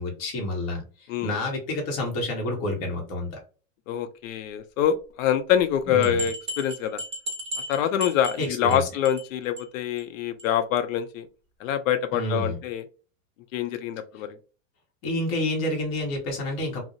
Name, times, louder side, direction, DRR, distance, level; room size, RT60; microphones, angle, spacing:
voice 1, 0.0-3.4 5.9-6.3 8.4-8.8 12.1-12.6 15.0-16.8, left 1 dB, 40° left, 1.0 m, -29 dB
voice 2, 3.9-7.0 7.7-11.3 11.6-12.8 13.5-14.4, left 9 dB, 75° left, 0.5 m, -25 dB
sound 1, 6.0-8.8 9.0-9.3 9.6-9.7 10.0-10.1 10.4-10.5, equal, 15° right, 0.7 m, -35 dB
2.4 x 2.0 x 2.6 m
supercardioid pair, 130°, 40 cm